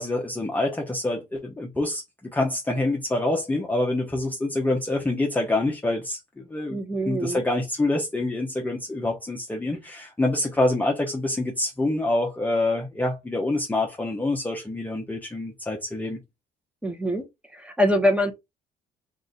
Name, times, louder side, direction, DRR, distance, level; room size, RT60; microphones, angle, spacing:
voice 1, 0.0-6.8 7.1-16.2, left 2 dB, 10° left, 0.8 m, -26 dB
voice 2, 6.7-7.4 16.8-18.3, equal, 5° right, 1.0 m, -24 dB
3.7 x 2.6 x 3.9 m
cardioid pair, 110°, 17 cm